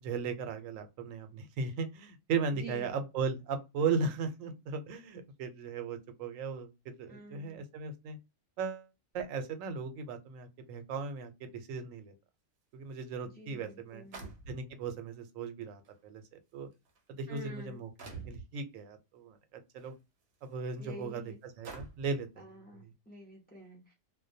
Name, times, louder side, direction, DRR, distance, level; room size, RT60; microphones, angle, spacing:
voice 1, 0.0-8.2 8.6-8.9 9.1-12.1 12.7-14.0 14.5-16.2 16.5-16.7 17.1-17.9 18.2-19.9 20.4-22.5 22.8-22.9, right 5 dB, 90° right, 1.0 m, -37 dB
voice 2, 2.5-3.0 7.1-7.6 13.3-14.2 17.3-17.8 20.8-21.4 22.4-23.9, equal, 10° left, 0.5 m, -48 dB
sound 1, 13.0-13.1 14.1-14.9 15.8-15.9 16.7-17.0 18.0-18.5 19.8-19.9 20.5-20.6 21.6-22.2, right 4 dB, 60° right, 0.8 m, -46 dB
2.2 x 2.2 x 2.6 m
omnidirectional pair, 1.3 m